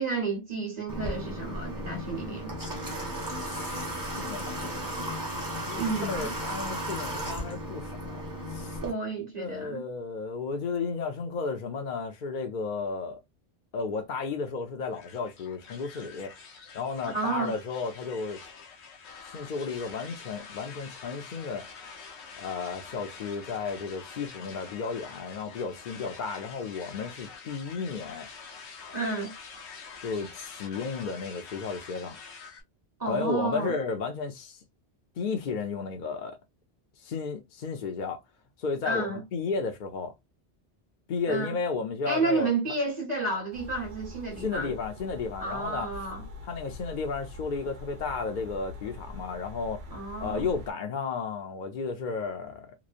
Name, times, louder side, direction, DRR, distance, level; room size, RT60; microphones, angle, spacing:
voice 1, 0.0-2.5 5.7-6.3 8.8-9.8 17.1-17.6 28.9-29.3 33.0-33.7 38.9-39.2 41.2-41.6 42.0-44.7 45.4-46.2 49.9-50.5, right 3 dB, 45° right, 1.0 m, -31 dB
Water / Water tap faucet, 0.9-8.9, equal, 20° right, 0.8 m, -35 dB
voice 2, 3.4-5.0 5.4-8.2 8.5-8.8 9.4-13.2 13.7-16.3 16.7-18.4 19.3-21.7 22.4-28.3 30.0-32.2 33.1-34.6 35.2-36.4 37.0-38.2 38.6-40.1 41.1-42.5 44.4-45.9 46.4-49.8 50.2-52.7, left 4 dB, 55° left, 0.6 m, -33 dB
sound 1, 14.9-32.6, left 5 dB, 85° left, 1.0 m, -46 dB
sound 2, 43.5-50.7, left 2 dB, 75° right, 1.0 m, -44 dB
3.0 x 2.0 x 2.4 m
omnidirectional pair, 1.1 m